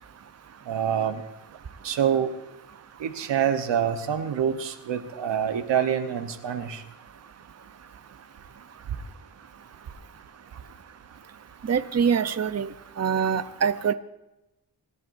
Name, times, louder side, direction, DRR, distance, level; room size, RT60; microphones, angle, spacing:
voice 1, 0.7-1.2 1.8-2.3 3.0-6.8, right 8 dB, 90° right, 7 dB, 1.2 m, -26 dB
voice 2, 11.7-12.7 13.0-13.9, right 7 dB, 35° right, 11 dB, 0.8 m, -24 dB
24.0 x 11.0 x 2.7 m, 0.93 s
cardioid pair, 55°, 42 cm